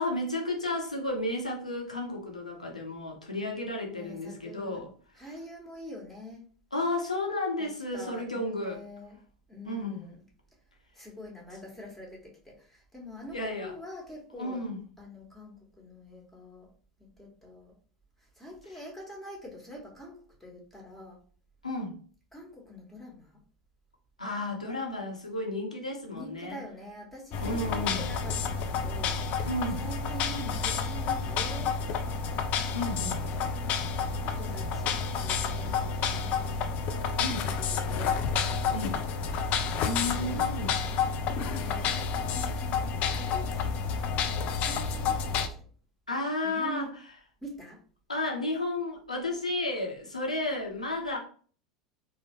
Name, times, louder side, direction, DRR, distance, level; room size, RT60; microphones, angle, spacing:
voice 1, 0.0-4.9 6.7-8.8 9.7-10.0 13.3-13.7 14.4-14.8 21.6-22.0 24.2-26.6 27.4-28.0 29.5-29.8 32.7-33.2 37.2-37.4 38.7-39.0 39.8-40.7 46.1-46.9 48.1-51.2, left 2 dB, 85° left, 0.8 m, -32 dB
voice 2, 4.0-4.8 5.2-6.5 7.6-9.2 9.5-10.2 10.9-14.6 15.0-16.7 17.0-17.7 18.3-21.2 22.3-23.4 26.1-32.2 33.2-33.6 34.2-36.8 37.4-39.2 40.0-40.4 41.4-41.9 42.3-45.6 46.4-46.9 47.4-47.8, left 1 dB, 5° left, 1.3 m, -45 dB
sound 1, 27.3-45.5, left 5 dB, 40° left, 0.4 m, -30 dB
3.6 x 2.0 x 3.0 m
figure-of-eight pair, 80°, 4 cm